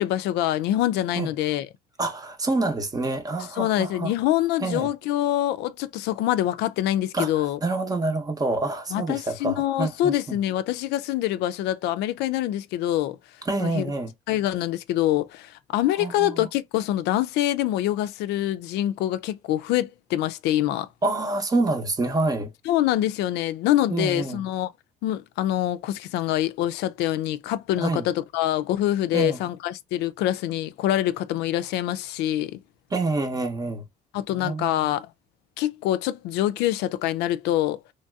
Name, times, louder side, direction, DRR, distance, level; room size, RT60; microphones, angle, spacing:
voice 1, 0.0-1.7 3.6-7.6 8.9-13.2 13.6-13.9 14.3-20.9 22.7-24.7 25.0-32.6 34.1-35.1 35.6-37.8, left 13 dB, 85° left, 0.4 m, -25 dB
voice 2, 2.0-4.1 4.6-4.9 7.1-10.1 13.5-14.1 16.0-16.5 21.0-22.5 23.9-24.4 27.8-28.0 29.1-29.4 32.9-33.8 34.3-34.8, right 2 dB, 20° right, 0.7 m, -27 dB
3.1 x 2.7 x 2.2 m
cardioid pair, 110°, 17 cm